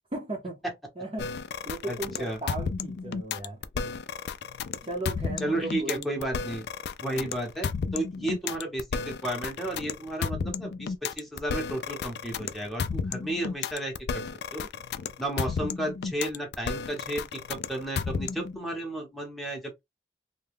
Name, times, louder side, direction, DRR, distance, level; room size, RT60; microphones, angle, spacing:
voice 1, 0.1-0.6 1.0-1.3 1.7-3.6 4.8-6.2 7.1-7.3 8.2-8.3, right 2 dB, 30° right, 0.7 m, -36 dB
sound 1, 1.2-18.6, left 6 dB, 70° left, 0.3 m, -33 dB
voice 2, 1.9-2.4 5.4-6.6 7.0-14.3 14.5-14.7 15.2-19.8, right 1 dB, ahead, 0.8 m, -33 dB
2.8 x 2.2 x 3.3 m
head